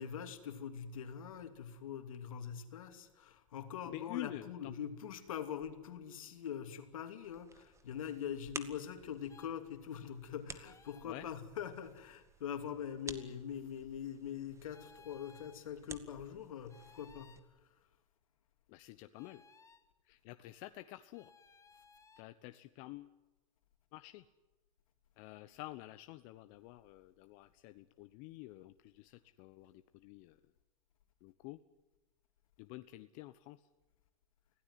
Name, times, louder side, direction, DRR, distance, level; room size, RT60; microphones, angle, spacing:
voice 1, 0.0-17.8, left 8 dB, 85° left, 2.9 m, -43 dB
voice 2, 3.9-4.7 11.0-11.3 18.7-19.4 20.0-21.3 22.2-23.2 23.9-24.2 25.2-30.4 31.2-31.6 32.6-33.7, left 18 dB, 55° left, 1.1 m, -49 dB
sound 1, 7.2-17.4, right 4 dB, 15° right, 2.0 m, -53 dB
sound 2, 9.3-9.6 10.6-11.1 13.1-13.3 14.7-15.6 16.7-17.4 19.1-19.8 21.1-22.2, left 5 dB, 20° left, 2.2 m, -61 dB
25.5 x 17.0 x 9.5 m
hypercardioid pair, 105°, 17 cm